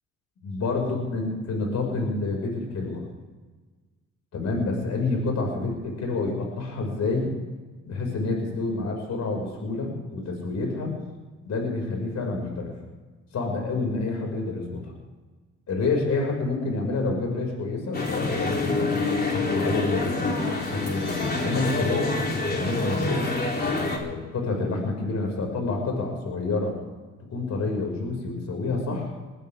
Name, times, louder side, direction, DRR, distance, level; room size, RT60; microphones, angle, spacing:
voice 1, 0.4-3.0 4.3-7.3 7.9-10.9 11.4-12.7 13.3-14.9 15.7-18.9 19.3-20.3 20.6-22.1 22.5-23.2 23.6-26.8 27.3-29.1, left 3 dB, 60° left, 1 dB, 6.1 m, -28 dB
sound 1, 17.9-24.0, left 3 dB, 30° left, 3.6 m, -27 dB
22.0 x 15.0 x 3.7 m, 1.3 s
cardioid pair, 90°, 30 cm